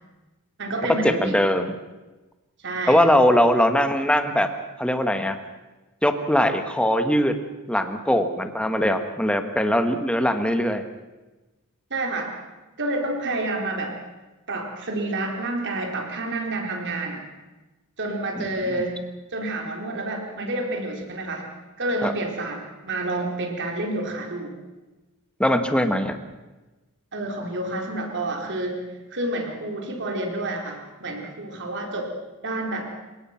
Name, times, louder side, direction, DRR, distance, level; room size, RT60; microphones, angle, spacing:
voice 1, 0.6-1.3 2.6-3.1 11.9-12.3 12.8-14.0 14.5-17.2 18.0-19.0 19.3-21.5 21.8-24.5 27.1-32.1 32.4-32.9, right 2 dB, 55° right, 2 dB, 4.3 m, -29 dB
voice 2, 1.2-1.8 2.9-4.5 4.8-5.4 6.0-7.3 7.7-10.8 18.4-18.5 22.0-22.1 25.4-26.1, equal, 5° left, 7 dB, 1.7 m, -21 dB
29.0 x 17.5 x 6.0 m, 1.1 s
head